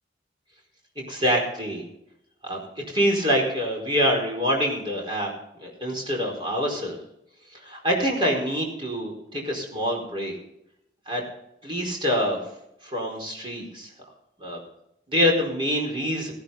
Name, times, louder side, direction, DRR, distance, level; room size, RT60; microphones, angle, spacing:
voice 1, 1.0-1.8 2.4-2.6 2.9-5.3 5.6-7.0 7.6-10.3 11.1-11.2 11.6-12.4 12.8-13.9 14.4-14.6 15.1-16.3, equal, 30° right, -1 dB, 4.6 m, -25 dB
17.5 x 11.5 x 4.0 m, 0.79 s
head